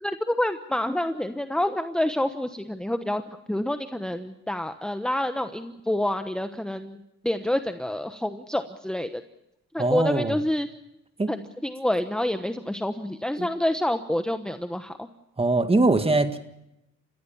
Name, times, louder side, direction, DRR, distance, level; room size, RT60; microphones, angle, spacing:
voice 1, 0.0-3.2 3.5-7.0 7.2-9.1 9.7-10.7 11.3-15.1, left 1 dB, 5° left, 8 dB, 1.1 m, -27 dB
voice 2, 9.8-10.4 11.2-11.3 13.4-13.5 15.4-16.4, right 2 dB, 20° right, 9 dB, 2.0 m, -22 dB
29.0 x 15.5 x 7.2 m, 0.86 s
cardioid pair, 90°, 30 cm